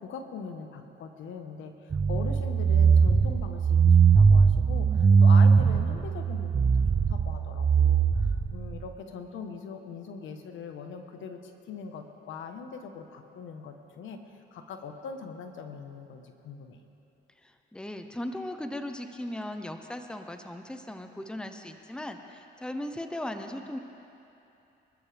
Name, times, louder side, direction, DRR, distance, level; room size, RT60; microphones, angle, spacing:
voice 1, 0.0-16.8, left 5 dB, 75° left, 5 dB, 1.3 m, -41 dB
sound 1, 1.9-8.8, right 5 dB, 30° right, 0.6 m, -21 dB
voice 2, 17.4-23.8, left 1 dB, 5° left, 6 dB, 0.9 m, -37 dB
24.5 x 13.0 x 3.5 m, 2.9 s
cardioid pair, 90°, 20 cm